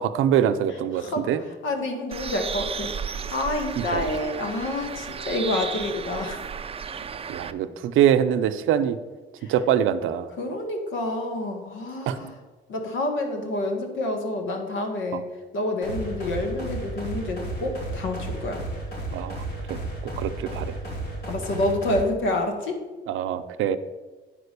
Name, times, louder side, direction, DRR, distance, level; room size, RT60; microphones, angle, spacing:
voice 1, 0.0-1.4 3.8-4.1 7.3-9.0 9.5-10.3 12.1-12.2 15.1-15.2 19.1-19.4 19.7-19.8 20.2-20.8 23.1-23.8, right 9 dB, 90° right, 11 dB, 0.6 m, -24 dB
voice 2, 0.9-1.3 1.6-6.4 9.4-9.5 10.4-12.3 12.7-15.3 15.5-18.6 21.3-22.8, left 2 dB, 80° left, 4 dB, 1.7 m, -28 dB
Bird, 2.1-7.5, right 6 dB, 30° right, 0.5 m, -34 dB
sound 1, 15.8-22.0, right 2 dB, 60° left, 3.1 m, -33 dB
9.2 x 4.9 x 6.7 m, 1.3 s
cardioid pair, 90°, 20 cm